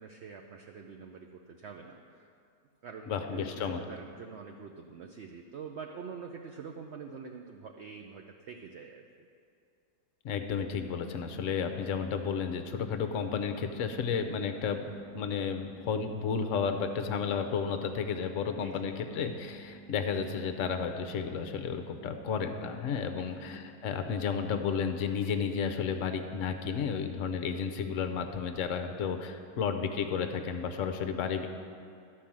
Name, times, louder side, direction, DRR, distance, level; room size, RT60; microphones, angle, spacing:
voice 1, 0.0-2.3 2.8-9.3 18.6-18.9 23.2-23.4, right 6 dB, 70° right, 3 dB, 0.6 m, -46 dB
voice 2, 3.1-3.8 10.2-14.9 15.1-31.5, left 6 dB, 60° left, 6 dB, 0.9 m, -32 dB
sound 1, 11.0-23.5, right 2 dB, 30° left, 1.3 m, -51 dB
12.0 x 4.6 x 7.4 m, 2.4 s
omnidirectional pair, 1.8 m